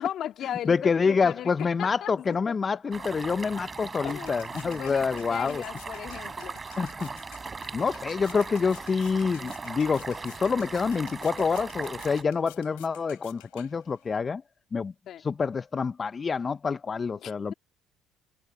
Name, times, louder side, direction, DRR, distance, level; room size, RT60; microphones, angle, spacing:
voice 1, 0.0-1.5 1.8-2.5 4.0-6.6 15.1-15.2 17.2-17.5, left 11 dB, 60° left, 2.4 m, -37 dB
voice 2, 0.6-5.6 6.8-7.1 7.7-14.4 14.7-14.9 15.2-17.5, left 5 dB, 35° left, 0.6 m, -27 dB
sound 1, 2.9-12.2, right 4 dB, 30° right, 5.9 m, -39 dB
sound 2, 3.5-14.2, left 32 dB, 85° left, 4.2 m, -53 dB
hypercardioid pair, 65°, 0 cm